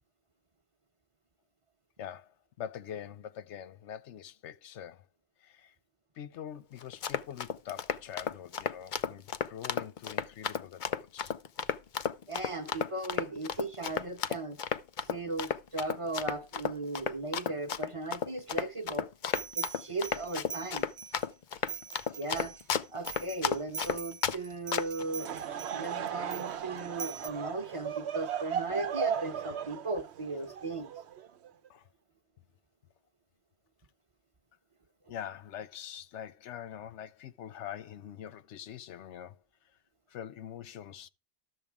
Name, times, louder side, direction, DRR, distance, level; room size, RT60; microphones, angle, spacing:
voice 1, 2.0-5.1 5.4-5.7 6.1-11.3 21.9-22.0 31.7-31.9 35.1-39.4 40.1-41.1, left 10 dB, 85° left, 1.0 m, -44 dB
Run, 6.8-24.4 24.7-25.0, left 8 dB, 55° left, 0.6 m, -33 dB
voice 2, 12.3-14.6 15.1-19.1 19.5-20.8 22.2-22.6 22.9-25.3 25.7-30.9, right 2 dB, 30° right, 1.0 m, -37 dB
sound 1, 19.2-21.3 21.7-27.3, right 6 dB, 45° right, 0.6 m, -43 dB
Laughter / Crowd, 25.0-31.5, right 8 dB, 70° right, 1.0 m, -36 dB
12.5 x 7.0 x 3.5 m
omnidirectional pair, 1.2 m